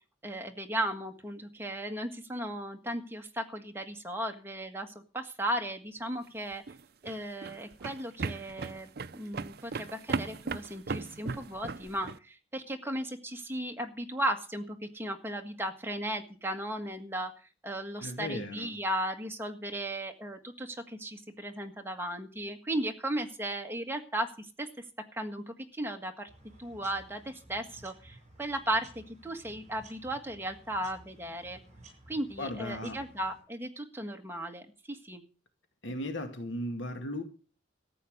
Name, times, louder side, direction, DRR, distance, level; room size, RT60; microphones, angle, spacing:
voice 1, 0.2-6.6 7.0-17.3 17.6-24.7 25.1-26.3 26.6-31.6 32.1-35.2, right 1 dB, 10° right, 3 dB, 1.7 m, -36 dB
sound 1, 6.5-12.2, right 4 dB, 55° right, 0.6 m, -37 dB
voice 2, 18.0-18.7 32.4-33.0 35.8-37.2, left 1 dB, 80° left, 6 dB, 2.2 m, -36 dB
sound 2, 26.3-33.4, right 1 dB, 40° right, 7.2 m, -55 dB
14.0 x 8.5 x 6.6 m, 0.36 s
head